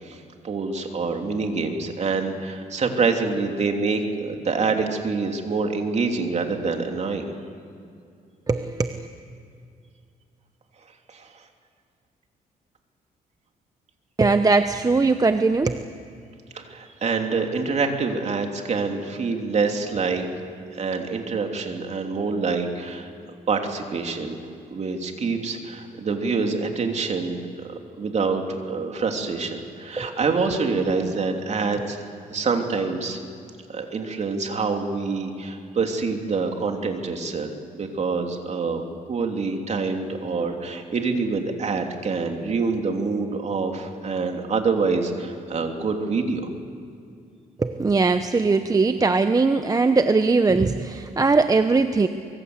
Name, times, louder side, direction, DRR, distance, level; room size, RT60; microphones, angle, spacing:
voice 1, 0.0-7.3 11.1-11.3 16.5-20.3 20.7-23.1 23.5-27.5 28.0-32.0 32.3-33.2 33.7-38.8 39.1-46.5, right 4 dB, 45° right, 3 dB, 3.2 m, -26 dB
voice 2, 8.5-9.1 14.2-15.8 30.0-30.2 31.0-31.1 47.6-52.1, right 3 dB, 25° right, 9 dB, 0.8 m, -20 dB
24.5 x 23.5 x 8.1 m, 2.4 s
cardioid pair, 100°, 16 cm